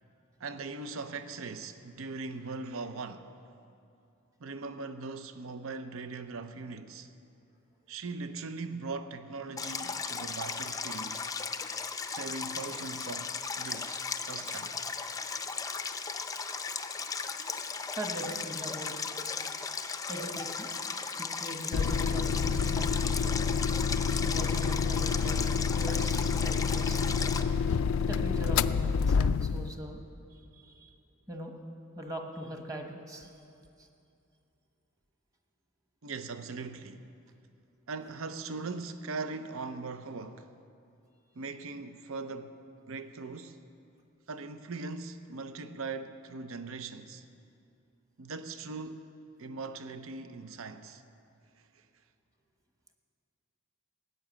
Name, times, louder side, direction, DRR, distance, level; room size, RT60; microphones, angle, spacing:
voice 1, 0.4-3.3 4.4-7.1 7.9-11.3 12.0-14.8 36.0-37.1 37.9-40.5 41.4-43.6 44.3-47.2 48.2-49.1 49.4-51.0 51.7-51.8, right 4 dB, 70° right, 0.7 m, -40 dB
Stream, 9.6-27.4, left 5 dB, 15° left, 0.5 m, -36 dB
voice 2, 17.9-18.9 20.1-20.7 21.0-23.1 24.1-27.3 28.1-30.0 30.3-30.9 31.3-31.6 32.0-33.3, right 1 dB, 15° right, 1.3 m, -41 dB
sound 1, 21.7-29.8, left 6 dB, 65° left, 0.3 m, -28 dB
16.5 x 9.8 x 7.4 m
head